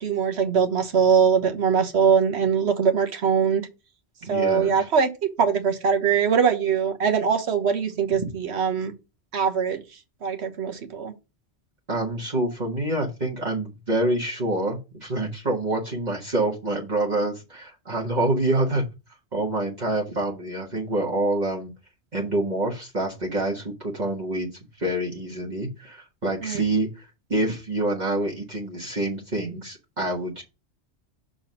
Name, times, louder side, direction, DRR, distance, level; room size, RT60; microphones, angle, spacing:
voice 1, 0.0-3.7 4.3-5.1 5.4-8.9 9.3-9.8 10.2-11.1 26.4-26.6, right 6 dB, 70° right, 1.3 m, -22 dB
voice 2, 4.2-4.9 11.9-18.8 19.3-21.7 22.1-24.5 24.8-30.4, right 1 dB, 40° right, 1.4 m, -27 dB
6.0 x 3.9 x 5.2 m
omnidirectional pair, 1.2 m